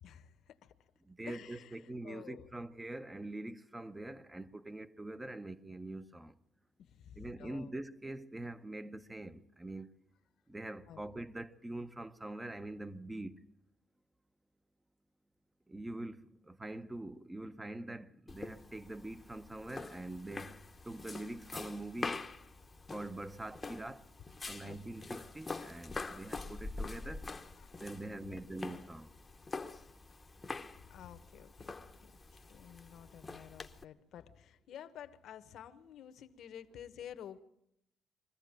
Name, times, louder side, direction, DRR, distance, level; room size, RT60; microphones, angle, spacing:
voice 1, 0.0-0.7 1.2-2.5 6.8-7.7 10.9-11.0 24.6-24.8 25.7-25.8 27.6-28.4 30.8-37.4, left 9 dB, 65° left, 1.3 m, -52 dB
voice 2, 1.1-6.3 7.2-9.9 10.5-13.3 15.7-20.6 20.8-22.2 22.9-24.0 24.5-27.2 27.8-29.1, right 2 dB, 10° right, 0.8 m, -44 dB
sound 1, 18.3-33.8, left 3 dB, 20° left, 1.0 m, -45 dB
22.5 x 14.5 x 8.9 m
cardioid pair, 130°, 0 cm